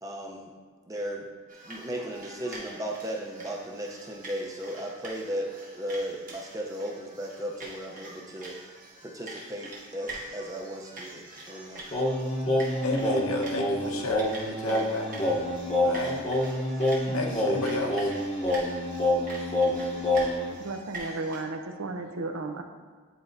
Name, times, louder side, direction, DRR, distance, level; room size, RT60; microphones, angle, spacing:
voice 1, 0.0-0.5 0.9-1.3 1.6-8.6 9.0-11.9, equal, 15° right, 0 dB, 0.6 m, -36 dB
sound 1, 1.5-21.4, right 2 dB, 35° right, 1.1 m, -45 dB
Singing, 11.9-20.5, left 1 dB, 25° left, 0.8 m, -27 dB
voice 2, 12.5-15.1 15.8-16.3 17.1-18.1, left 2 dB, 90° left, 1 dB, 0.9 m, -32 dB
voice 3, 20.6-22.6, right 2 dB, 75° right, 6 dB, 0.6 m, -34 dB
10.0 x 4.2 x 2.6 m, 1.5 s
head